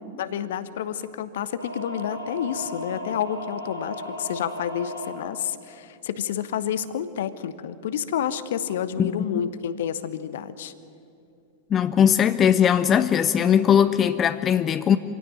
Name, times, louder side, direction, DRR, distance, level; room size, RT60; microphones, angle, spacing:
voice 1, 0.2-10.7, left 9 dB, 60° left, 14 dB, 1.1 m, -29 dB
sound 1, 1.6-5.2, left 1 dB, 85° left, 3.4 m, -36 dB
voice 2, 11.7-15.0, left 8 dB, 25° left, 12 dB, 0.7 m, -19 dB
25.5 x 17.0 x 9.3 m, 2.5 s
figure-of-eight pair, 90°, 0 cm